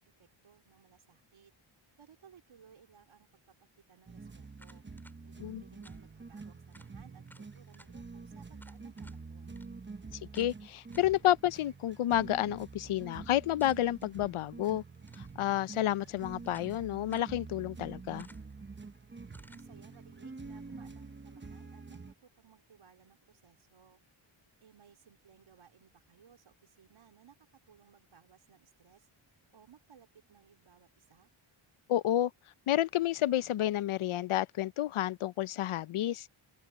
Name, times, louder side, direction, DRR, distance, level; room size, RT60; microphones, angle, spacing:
voice 1, 0.0-1.5 2.0-3.4 3.9-4.8 5.2-9.6 19.5-24.0 24.6-29.1 29.5-31.3, right 8 dB, 70° right, 3.5 m, -61 dB
sound 1, 4.1-22.1, right 4 dB, 20° right, 1.0 m, -47 dB
sound 2, 4.6-5.2 5.8-6.0 6.4-6.5 6.7-6.9 7.3-7.9 8.6-9.2 9.6-9.7 10.3-10.5 10.9-11.2 13.6-14.1 14.9-15.4 16.0-16.8 17.1-17.3 18.2-18.6 19.3-19.7, equal, 5° left, 6.1 m, -59 dB
voice 2, 10.3-14.8 15.2-18.3 31.9-32.3 32.7-36.3, left 13 dB, 80° left, 0.7 m, -30 dB
open air
wide cardioid pair, 115°, 49 cm